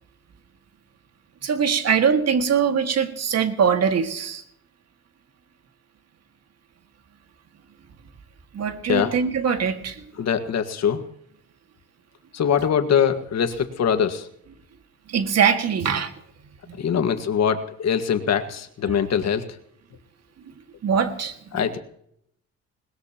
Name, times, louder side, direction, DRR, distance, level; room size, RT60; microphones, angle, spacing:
voice 1, 1.4-4.4 8.5-10.0 15.1-16.1 16.7-16.8 18.9-19.0 20.8-21.7, right 7 dB, 55° right, 6 dB, 2.0 m, -22 dB
voice 2, 10.2-11.1 12.3-14.3 16.8-19.4 21.5-21.8, left 7 dB, 60° left, 8 dB, 1.7 m, -22 dB
21.0 x 19.5 x 3.0 m, 0.71 s
cardioid pair, 90°, 30 cm